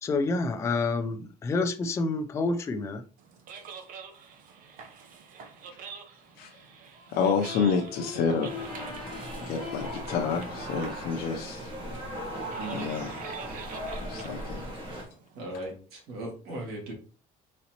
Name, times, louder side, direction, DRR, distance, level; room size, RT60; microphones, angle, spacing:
voice 1, 0.0-3.0, left 3 dB, 20° left, 6 dB, 0.3 m, -28 dB
Navigace vysilackou, 3.2-15.4, right 6 dB, 60° right, 0.8 m, -46 dB
voice 2, 7.1-8.5 9.5-11.7 12.7-13.1 14.1-14.6, left 6 dB, 75° left, 2 dB, 0.6 m, -28 dB
sound 1, 7.4-13.5, left 4 dB, ahead, 1.6 m, -45 dB
sound 2, 8.4-15.0, right 1 dB, 35° right, 1.4 m, -38 dB
voice 3, 12.6-12.9 15.4-16.9, right 1 dB, 75° right, -2 dB, 2.0 m, -38 dB
4.2 x 4.0 x 2.9 m, 0.38 s
cardioid pair, 165°, 16 cm